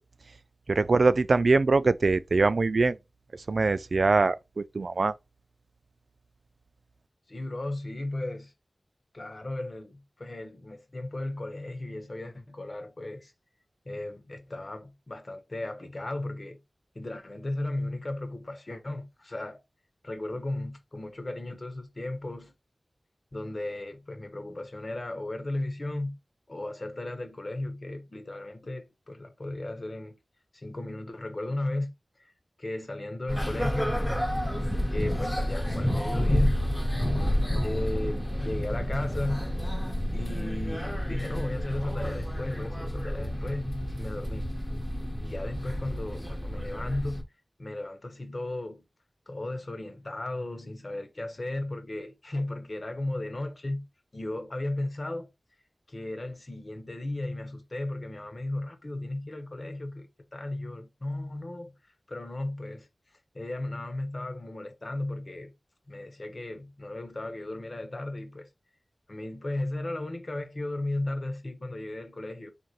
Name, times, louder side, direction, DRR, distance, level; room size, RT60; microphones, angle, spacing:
voice 1, 0.7-3.0 3.5-5.1, right 3 dB, 70° right, 0.3 m, -23 dB
voice 2, 7.3-8.5 9.1-13.3 13.8-16.6 16.9-19.6 20.0-22.5 23.3-26.2 26.5-30.2 30.5-31.9 32.2-32.3 32.6-34.0 34.9-36.6 37.6-39.5 40.1-43.7 44.0-44.5 45.2-47.2 47.6-48.8 49.3-53.9 54.1-55.3 55.9-61.7 62.1-62.9 63.3-65.5 65.9-68.5 69.1-72.5, left 1 dB, 45° left, 1.1 m, -35 dB
sound 1, 33.3-47.2, equal, 5° left, 1.0 m, -30 dB
3.8 x 2.6 x 4.6 m
wide cardioid pair, 60°, 0 cm